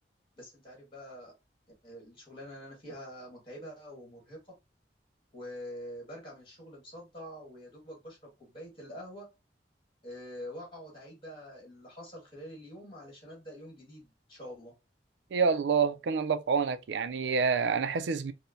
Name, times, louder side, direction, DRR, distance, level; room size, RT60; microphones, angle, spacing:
voice 1, 0.4-1.3 1.8-4.4 5.3-9.3 10.0-14.7, equal, 30° left, 1.6 m, -46 dB
voice 2, 15.3-18.3, right 5 dB, 75° right, 0.4 m, -27 dB
4.2 x 2.1 x 2.6 m
head